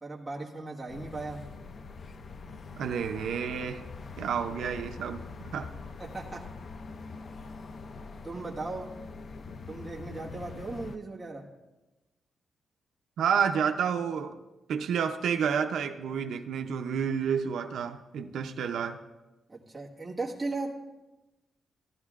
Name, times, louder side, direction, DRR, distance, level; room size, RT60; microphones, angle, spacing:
voice 1, 0.0-1.5 6.0-6.5 8.2-8.9 9.7-11.5 19.5-20.8, right 3 dB, 15° right, -4 dB, 1.5 m, -37 dB
sound 1, 0.9-11.0, left 4 dB, 45° left, 0.4 m, -44 dB
voice 2, 2.8-3.8 4.2-5.2 5.5-5.7 13.2-14.4 14.7-19.0, right 7 dB, 85° right, 6 dB, 0.5 m, -30 dB
16.0 x 11.5 x 2.4 m, 1.1 s
wide cardioid pair, 165°, 0 cm